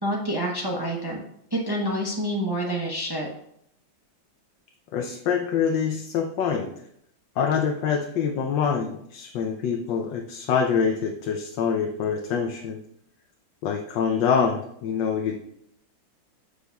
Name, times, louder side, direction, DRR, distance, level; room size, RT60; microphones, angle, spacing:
voice 1, 0.0-1.2 1.5-3.3, equal, 35° right, -1 dB, 0.3 m, -27 dB
voice 2, 4.9-6.7 7.4-12.8 13.6-15.4, left 6 dB, 75° left, 3 dB, 1.3 m, -25 dB
13.5 x 4.9 x 2.3 m, 0.73 s
omnidirectional pair, 2.1 m